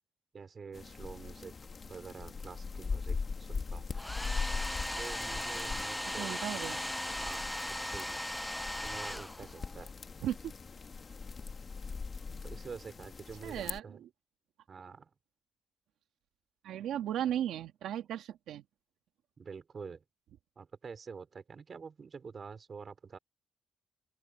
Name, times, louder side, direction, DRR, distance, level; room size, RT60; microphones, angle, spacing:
voice 1, 0.3-1.5 1.9-3.2 3.5-3.9 5.0-6.6 7.2-7.5 7.8-9.9 12.3-14.0 14.7-15.1 19.4-20.0 20.5-23.2, right 5 dB, 40° right, 3.4 m, -47 dB
sound 1, 0.7-13.8, left 4 dB, 35° left, 1.5 m, -41 dB
Domestic sounds home sounds, 3.9-9.8, left 1 dB, 5° left, 0.5 m, -38 dB
voice 2, 6.1-6.8 10.2-10.5 13.4-14.1 16.6-18.6, right 11 dB, 85° right, 2.1 m, -36 dB
open air
cardioid pair, 120°, 0 cm